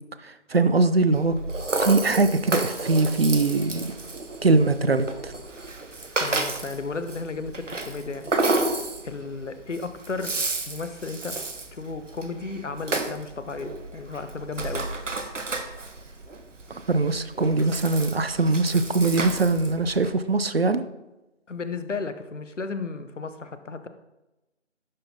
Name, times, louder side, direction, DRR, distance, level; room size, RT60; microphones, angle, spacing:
voice 1, 0.2-1.4 1.8-3.9 4.4-5.3 16.9-20.8, right 3 dB, 55° right, 12 dB, 0.5 m, -22 dB
Rattle (instrument), 1.1-20.1, right 2 dB, 90° right, 0.9 m, -32 dB
voice 2, 6.2-8.3 9.0-10.3 10.7-11.4 11.7-14.9 21.5-23.9, left 4 dB, 80° left, 10 dB, 0.8 m, -34 dB
10.5 x 3.8 x 2.8 m, 0.99 s
figure-of-eight pair, 160°, 36 cm